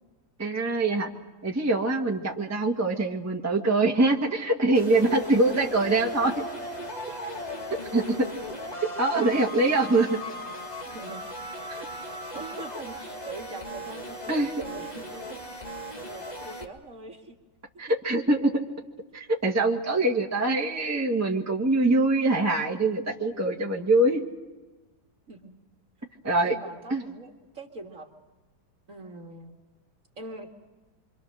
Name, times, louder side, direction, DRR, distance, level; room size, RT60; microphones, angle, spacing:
voice 1, 0.4-1.1 1.4-6.4 7.9-8.3 8.8-10.2 11.7-11.9 14.3-14.5 17.8-18.6 19.1-24.2 26.2-26.6 26.9-27.0, right 2 dB, 10° right, 0 dB, 1.7 m, -24 dB
sound 1, 4.7-16.6, equal, 20° left, 1.9 m, -37 dB
voice 2, 10.9-11.2 11.6-15.6 15.9-17.4 25.3-25.6 26.4-28.1 28.9-29.5 30.2-30.5, right 2 dB, 40° right, 2 dB, 2.1 m, -42 dB
26.5 x 26.0 x 6.6 m, 1.2 s
omnidirectional pair, 2.2 m